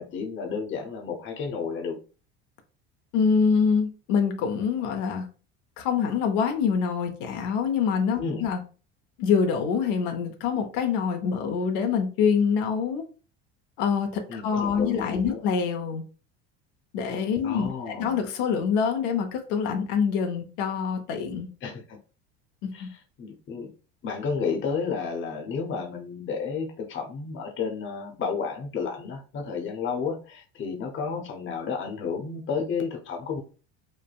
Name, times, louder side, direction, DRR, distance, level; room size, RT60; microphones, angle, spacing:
voice 1, 0.0-2.0 8.2-8.5 14.3-15.4 17.4-18.1 21.6-22.0 22.7-22.9 23.2-23.7 24.0-33.4, left 5 dB, 35° left, 0.7 m, -31 dB
voice 2, 3.1-5.3 5.8-8.6 9.2-13.0 13.8-16.0 16.9-21.5 22.6-22.9, left 6 dB, 80° left, 0.6 m, -25 dB
3.3 x 2.1 x 2.3 m
supercardioid pair, 110°, 33 cm